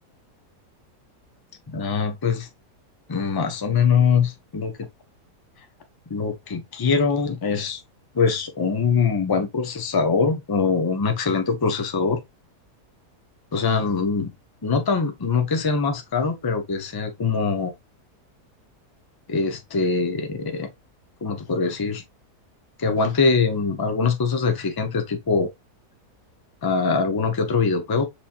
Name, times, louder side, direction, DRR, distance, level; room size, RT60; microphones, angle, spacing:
voice 1, 1.7-2.5 3.1-4.7 6.1-7.8 8.1-12.2 13.5-14.3 14.6-17.7 19.3-20.7 21.2-22.0 22.8-25.5 26.6-28.0, left 5 dB, 35° left, 0.3 m, -23 dB
6.1 x 2.9 x 2.4 m
omnidirectional pair, 1.7 m